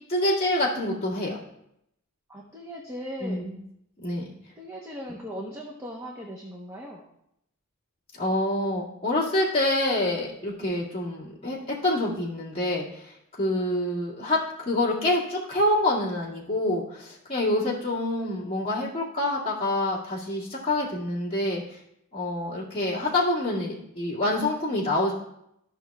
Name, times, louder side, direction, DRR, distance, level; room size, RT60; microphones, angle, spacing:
voice 1, 0.1-1.4 3.2-3.6 4.0-4.3 8.1-21.8 22.1-25.1, left 1 dB, 25° left, -7 dB, 2.0 m, -27 dB
voice 2, 2.3-3.4 4.6-7.0, equal, 15° right, -2 dB, 0.9 m, -38 dB
14.0 x 6.0 x 2.3 m, 0.78 s
head